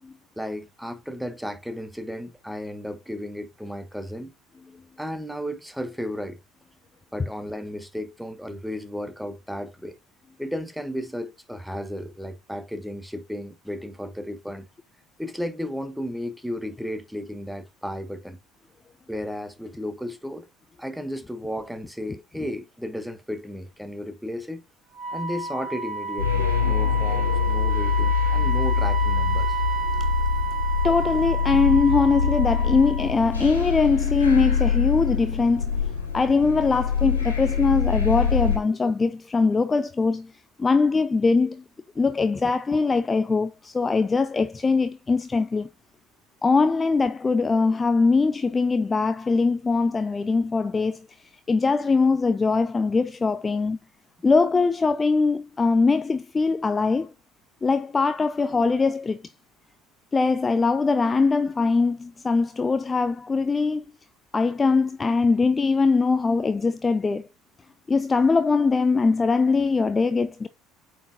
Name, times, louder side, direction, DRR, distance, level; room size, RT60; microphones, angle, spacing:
voice 1, 0.4-4.3 5.0-6.4 7.1-10.0 10.4-14.7 15.2-18.4 19.1-20.5 20.8-24.6 25.1-29.6, equal, ahead, 1.1 m, -34 dB
Wind instrument woodwind instrument, 24.9-33.2, right 5 dB, 30° right, 1.6 m, -31 dB
sound 1, 26.2-38.6, left 6 dB, 85° left, 2.0 m, -24 dB
voice 2, 30.8-40.3 40.6-41.6 42.0-45.7 46.4-51.1 51.5-53.8 54.2-57.1 57.6-59.2 60.1-63.8 64.3-67.3 67.9-70.5, left 4 dB, 25° left, 0.5 m, -22 dB
8.7 x 4.7 x 2.6 m
figure-of-eight pair, 60°, 0 cm